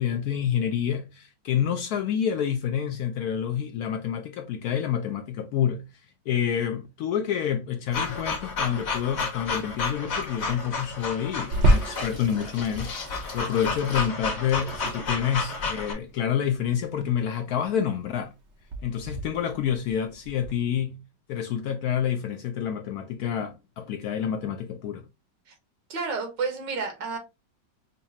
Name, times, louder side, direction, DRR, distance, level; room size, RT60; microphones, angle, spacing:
voice 1, 0.0-5.8 6.3-18.3 18.8-21.0 21.3-25.0, left 9 dB, 70° left, 0.9 m, -28 dB
sound 1, 7.9-15.9, left 4 dB, 45° left, 1.0 m, -31 dB
Water tap faucet / Sink (filling or washing), 11.5-20.5, right 1 dB, 60° right, 0.7 m, -30 dB
voice 2, 25.9-27.2, right 4 dB, 80° right, 1.8 m, -30 dB
5.2 x 2.4 x 2.6 m
omnidirectional pair, 1.9 m